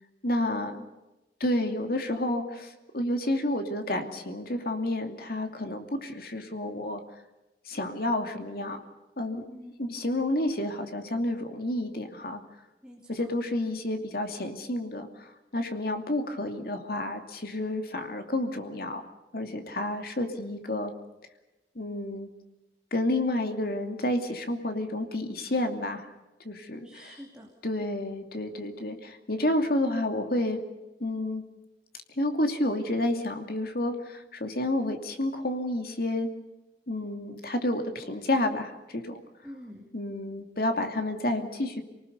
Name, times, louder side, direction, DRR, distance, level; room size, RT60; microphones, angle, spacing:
voice 1, 0.2-0.8 1.4-7.0 7.6-8.8 9.2-9.4 9.8-12.4 13.1-19.0 19.3-20.9 21.7-22.3 22.9-26.1 26.4-26.9 27.6-30.6 31.0-31.4 32.2-36.3 36.9-39.2 39.9-41.8, left 1 dB, 55° left, 6 dB, 2.6 m, -30 dB
voice 2, 9.5-9.9 12.8-13.3 26.8-27.5 39.4-39.9, equal, 5° right, -2 dB, 2.8 m, -47 dB
28.0 x 19.5 x 6.8 m, 1.0 s
head